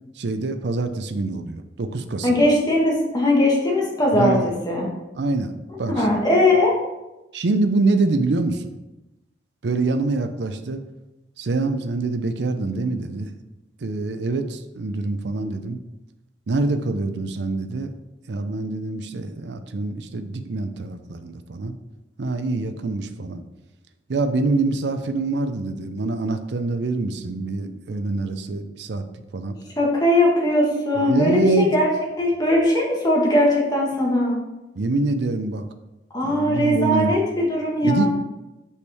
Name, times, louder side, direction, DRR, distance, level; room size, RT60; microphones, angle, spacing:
voice 1, 0.2-2.4 4.1-4.5 5.2-6.2 7.3-8.7 9.6-10.8 11.4-13.3 13.8-15.8 16.5-17.9 18.3-21.7 22.2-23.4 24.1-29.0 29.3-29.6 30.9-31.7 34.8-35.7 36.2-37.2 37.8-38.1, right 3 dB, 65° right, 9 dB, 0.5 m, -25 dB
voice 2, 2.2-4.4 4.7-4.9 5.9-6.7 29.8-31.9 32.2-34.4 36.1-38.1, left 1 dB, 20° left, -2 dB, 1.5 m, -19 dB
6.2 x 5.5 x 3.5 m, 0.99 s
head